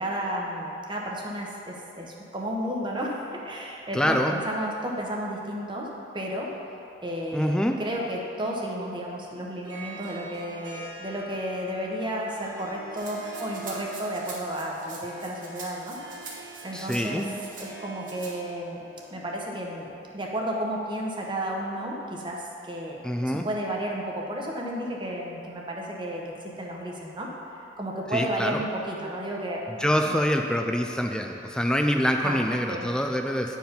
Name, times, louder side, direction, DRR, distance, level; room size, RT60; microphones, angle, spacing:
voice 1, 0.0-5.9 6.1-6.5 7.0-16.0 16.6-17.2 17.6-18.8 19.1-27.3 27.8-29.6 30.0-30.2 32.2-32.9, right 1 dB, 25° right, -1 dB, 1.0 m, -32 dB
voice 2, 3.9-4.3 7.3-7.8 16.7-17.3 23.0-23.4 28.1-28.6 29.7-33.6, equal, 5° left, 3 dB, 0.3 m, -25 dB
Harp, 9.5-19.9, right 2 dB, 75° right, 1.6 m, -44 dB
Rattle (instrument), 13.0-17.7 18.0-18.3, right 4 dB, 50° right, 1.3 m, -44 dB
9.2 x 4.7 x 5.2 m, 2.8 s
head